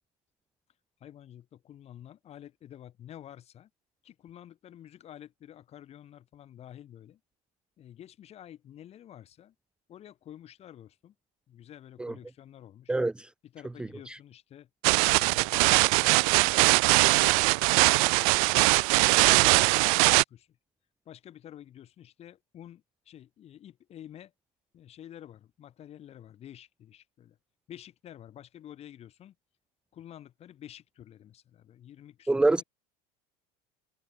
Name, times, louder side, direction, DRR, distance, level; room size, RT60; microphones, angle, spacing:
voice 1, 1.0-3.7 4.0-7.2 7.8-9.5 9.9-11.1 11.5-12.9 13.4-14.7 15.1-16.6 17.0-20.6 21.0-24.3 24.7-27.4 27.7-29.3 29.9-32.6, left 11 dB, 35° left, 8.0 m, -49 dB
voice 2, 12.9-13.3 14.1-14.2 32.3-32.6, right 2 dB, 5° right, 0.8 m, -25 dB
sound 1, 14.8-20.2, right 31 dB, 70° right, 1.3 m, -21 dB
cardioid pair, 150°, 19 cm